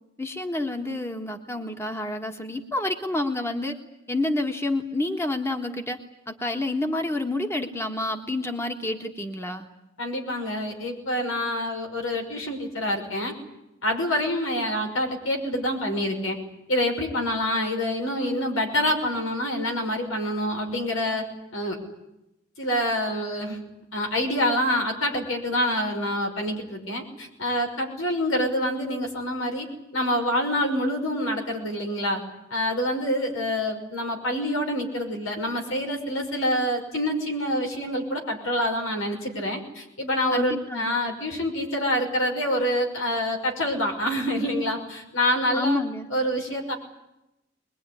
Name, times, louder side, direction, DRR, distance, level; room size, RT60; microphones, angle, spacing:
voice 1, 0.2-3.8 4.1-6.0 6.3-9.6 40.3-41.0 45.5-46.1, left 2 dB, 15° left, 4 dB, 1.5 m, -28 dB
voice 2, 10.0-13.3 13.8-16.4 16.7-21.2 21.5-21.8 22.6-23.6 23.9-29.7 29.9-32.2 32.5-45.8 46.1-46.7, equal, 90° left, 2 dB, 6.0 m, -26 dB
22.5 x 22.0 x 9.9 m, 0.91 s
head